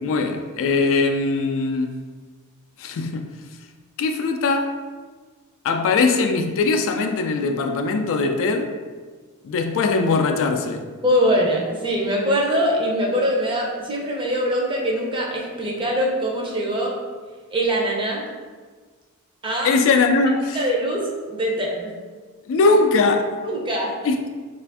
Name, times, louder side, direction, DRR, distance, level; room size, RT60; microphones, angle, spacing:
voice 1, 0.0-2.0 2.8-3.3 4.0-4.7 5.6-8.7 9.4-10.9 19.6-20.6 22.5-23.3 24.0-24.3, left 3 dB, 60° left, 0.3 m, -20 dB
voice 2, 11.0-16.9 17.5-18.2 19.4-19.7 20.5-21.9 23.4-23.9, equal, 25° right, 0.6 m, -23 dB
3.3 x 2.5 x 3.4 m
head